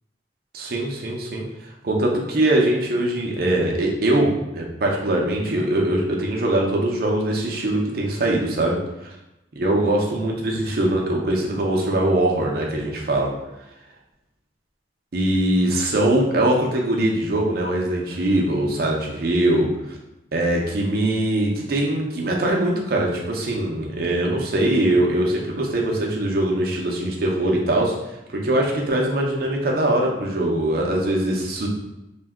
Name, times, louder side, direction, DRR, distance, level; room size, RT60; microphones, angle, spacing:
voice 1, 0.5-1.5 1.8-9.1 9.6-13.3 15.1-20.0 20.3-27.9 28.3-31.7, right 1 dB, 55° right, -1 dB, 0.5 m, -22 dB
2.6 x 2.2 x 3.5 m, 0.92 s
head